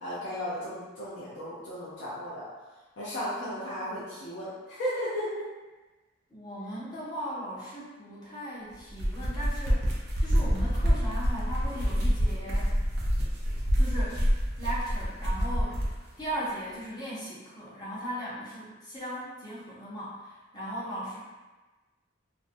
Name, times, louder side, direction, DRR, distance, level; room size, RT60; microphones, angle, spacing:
voice 1, 0.0-2.5 3.0-5.5, equal, 60° left, -10 dB, 0.5 m, -35 dB
voice 2, 6.3-12.8 13.8-14.2 14.6-15.8 16.2-21.2, equal, 20° left, -9 dB, 0.6 m, -38 dB
sound 1, 8.8-16.0, equal, 50° right, 0.5 m, -27 dB
2.4 x 2.0 x 2.5 m, 1.2 s
head